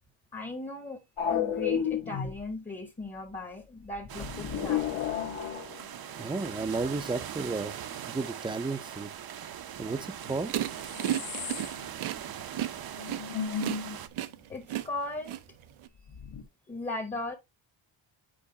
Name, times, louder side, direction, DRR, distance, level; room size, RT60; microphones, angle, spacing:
voice 1, 0.3-1.0 1.3-4.9 14.5-15.4 16.7-17.4, left 2 dB, 15° left, 0.8 m, -37 dB
sound 1, 1.2-2.4 4.0-6.1 10.2-10.3 10.6-11.9 12.2-12.3 12.6-12.7 12.9-14.0 16.1-16.4, left 8 dB, 75° left, 1.4 m, -33 dB
sound 2, 4.1-14.1, right 10 dB, 50° right, 0.6 m, -41 dB
voice 2, 6.2-7.7 8.0-9.1 9.8-10.5, right 3 dB, 10° right, 0.4 m, -33 dB
sound 3, 10.5-15.9, right 12 dB, 90° right, 0.7 m, -33 dB
8.7 x 4.7 x 2.7 m
wide cardioid pair, 150°, 47 cm